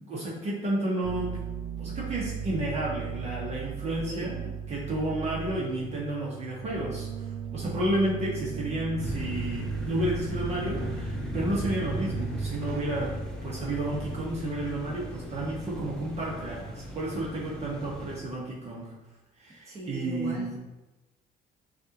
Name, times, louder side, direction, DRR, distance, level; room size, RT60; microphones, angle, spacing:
voice 1, 0.0-1.4 1.8-13.1 13.4-18.9 19.4-20.6, right 1 dB, 40° right, -6 dB, 1.2 m, -31 dB
sound 1, 1.0-18.4, right 8 dB, 70° right, 0.4 m, -38 dB
voice 2, 3.9-4.3 19.7-20.6, right 1 dB, 20° right, -6 dB, 1.4 m, -38 dB
sound 2, 9.0-18.2, left 1 dB, 5° left, 0.8 m, -37 dB
6.3 x 2.6 x 3.0 m, 1.1 s
cardioid pair, 110°, 17 cm